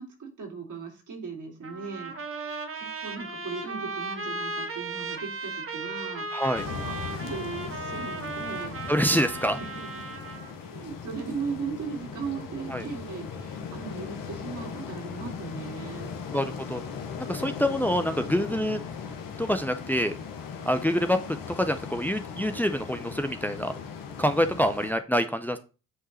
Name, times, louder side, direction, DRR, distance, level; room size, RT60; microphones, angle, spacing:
voice 1, 0.0-8.9 9.5-10.1 10.5-16.1, right 5 dB, 60° right, 1 dB, 3.0 m, -38 dB
Trumpet, 1.6-10.5, right 3 dB, 40° right, 1.5 m, -36 dB
voice 2, 6.3-6.6 8.9-9.6 12.7-12.8 16.3-16.8 17.3-18.8 19.4-20.1 20.7-21.2 21.6-23.7 24.2-25.6, equal, 5° left, 8 dB, 0.7 m, -26 dB
sound 1, 6.5-24.9, left 6 dB, 70° left, 1.2 m, -38 dB
8.2 x 3.8 x 4.2 m, 0.32 s
hypercardioid pair, 45°, 35 cm